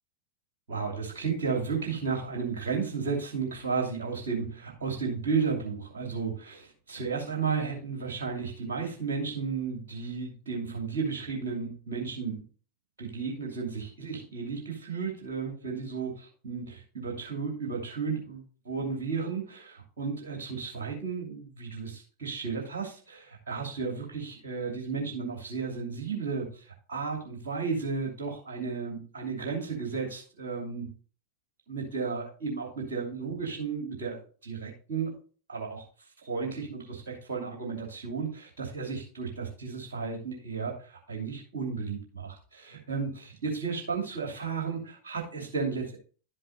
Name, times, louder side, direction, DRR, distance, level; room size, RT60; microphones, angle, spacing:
voice 1, 0.7-12.4 13.0-30.9 31.7-35.2 35.5-35.8 36.2-46.0, right 5 dB, 60° right, 0 dB, 2.7 m, -33 dB
11.5 x 7.7 x 2.6 m, 0.38 s
figure-of-eight pair, 90°, 0 cm